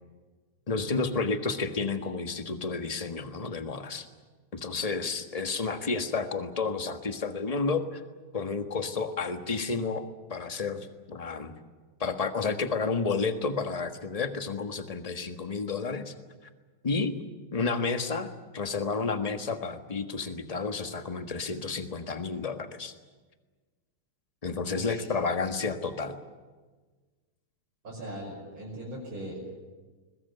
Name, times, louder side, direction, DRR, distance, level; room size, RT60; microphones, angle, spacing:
voice 1, 0.7-4.1 4.5-8.0 8.3-11.5 12.0-16.1 16.8-17.1 17.5-22.9 24.4-26.2, left 4 dB, 20° left, 7 dB, 1.4 m, -31 dB
voice 2, 24.7-25.1 27.8-29.4, right 1 dB, 70° right, -5 dB, 6.6 m, -39 dB
21.5 x 21.0 x 9.6 m, 1.3 s
omnidirectional pair, 2.3 m